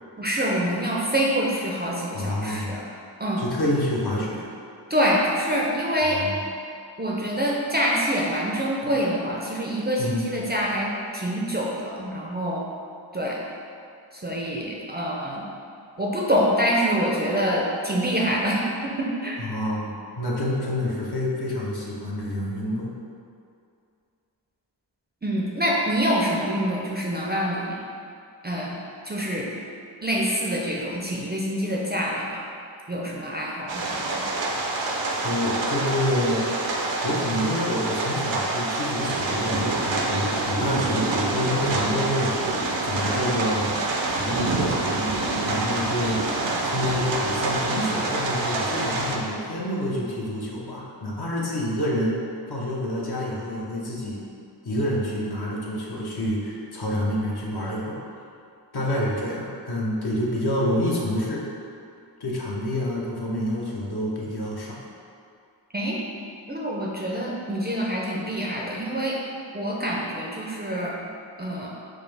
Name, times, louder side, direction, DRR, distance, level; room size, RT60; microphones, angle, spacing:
voice 1, 0.2-2.9 3.2-3.4 4.9-6.2 7.0-12.6 13.1-13.4 14.1-15.4 16.0-19.4 25.2-27.8 28.4-28.8 29.0-29.5 30.0-32.4 32.9-34.2 65.7-66.0 66.5-69.2 69.5-70.9 71.4-71.7, equal, 25° right, -3 dB, 0.4 m, -26 dB
voice 2, 2.1-2.8 3.4-4.5 6.1-6.4 8.8-8.9 10.0-10.4 19.4-22.9 35.0-36.5 37.0-43.7 44.1-46.3 46.6-52.2 52.5-54.2 54.6-58.0 58.7-61.5 62.2-64.8, left 1 dB, 60° left, -4 dB, 0.7 m, -28 dB
sound 1, 33.7-49.2, right 2 dB, 85° right, 0.5 m, -26 dB
5.0 x 2.0 x 3.3 m, 2.5 s
wide cardioid pair, 65°, 44 cm